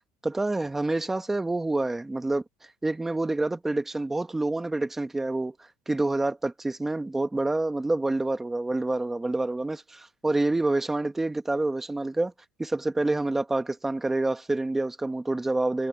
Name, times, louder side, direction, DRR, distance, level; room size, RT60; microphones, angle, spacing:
voice 1, 0.2-2.4 2.8-5.5 5.9-12.3 12.6-15.9, right 2 dB, 10° right, 1.2 m, -27 dB
cardioid pair, 155°, 4 cm